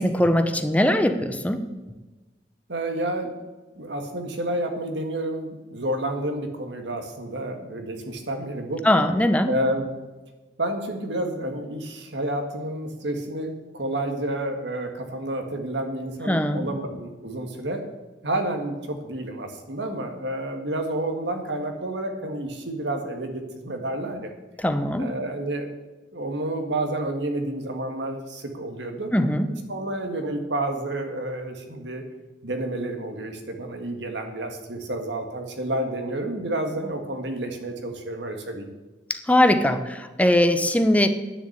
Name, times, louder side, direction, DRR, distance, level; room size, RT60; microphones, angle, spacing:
voice 1, 0.0-1.7 8.8-9.5 16.3-16.7 24.6-25.1 29.1-29.5 39.1-41.1, left 1 dB, 10° left, 8 dB, 0.8 m, -21 dB
voice 2, 2.7-3.3 3.8-8.8 9.5-9.9 10.6-17.8 18.2-24.3 25.0-25.7 26.1-29.1 29.7-32.0 32.4-38.7, right 1 dB, 90° right, 5 dB, 1.8 m, -30 dB
10.0 x 6.9 x 8.7 m, 1.2 s
head